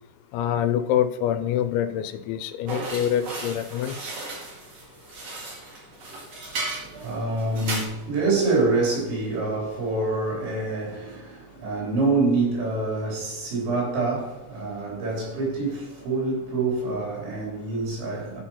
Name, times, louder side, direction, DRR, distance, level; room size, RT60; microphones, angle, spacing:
voice 1, 0.3-4.0, left 10 dB, 85° left, 2.9 m, -25 dB
sound 1, 2.7-7.9, right 2 dB, 45° right, 2.9 m, -35 dB
voice 2, 6.5-18.4, right 3 dB, 80° right, 5.7 m, -26 dB
12.0 x 4.5 x 5.6 m
omnidirectional pair, 5.2 m